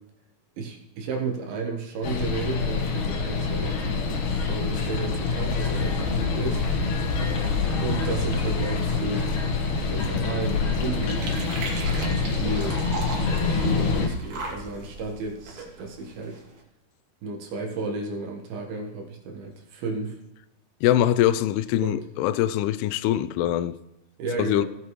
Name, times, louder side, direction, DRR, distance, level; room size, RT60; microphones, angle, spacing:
voice 1, 0.6-4.1 4.3-6.6 7.8-9.3 9.9-11.3 11.9-12.8 13.2-16.4 17.2-20.2 21.8-22.0 24.2-24.7, right 3 dB, 75° right, 3.2 m, -33 dB
sound 1, 2.0-14.1, left 4 dB, 60° left, 2.4 m, -26 dB
sound 2, 9.4-16.6, right 3 dB, 50° right, 2.4 m, -39 dB
sound 3, 15.3-16.4, equal, 5° right, 1.7 m, -41 dB
voice 2, 20.8-23.8 24.4-24.7, left 12 dB, 90° left, 2.6 m, -23 dB
16.5 x 8.4 x 3.1 m
omnidirectional pair, 4.5 m